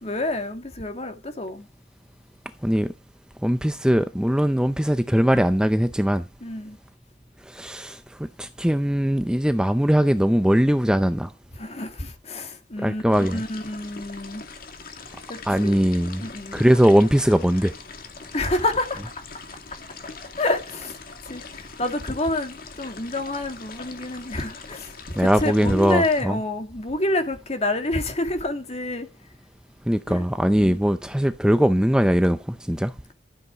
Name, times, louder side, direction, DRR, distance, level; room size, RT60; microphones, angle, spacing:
voice 1, 0.0-1.7 6.4-6.8 11.5-13.0 13.3-14.4 15.3-15.8 16.2-16.7 18.3-19.0 20.4-21.0 21.2-29.1 30.1-30.2 30.6-30.8, left 2 dB, 35° left, 2.1 m, -28 dB
voice 2, 2.6-2.9 3.4-6.2 7.5-11.3 12.8-13.4 15.5-16.3 16.5-17.7 25.2-26.4 29.9-32.9, equal, 5° right, 0.5 m, -20 dB
sound 1, 13.1-26.2, left 4 dB, 55° left, 2.1 m, -42 dB
13.0 x 8.0 x 4.9 m
head